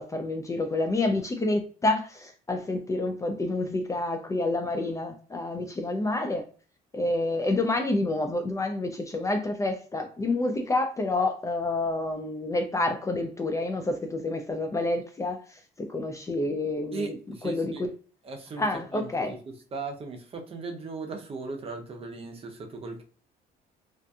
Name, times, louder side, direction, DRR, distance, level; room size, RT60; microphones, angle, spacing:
voice 1, 0.0-6.4 6.9-17.2 17.4-17.9 18.6-19.3, left 2 dB, 20° left, 0.3 m, -28 dB
voice 2, 16.9-17.8 18.2-23.0, right 3 dB, 35° right, 0.6 m, -38 dB
2.5 x 2.4 x 2.3 m
cardioid pair, 110°, 17 cm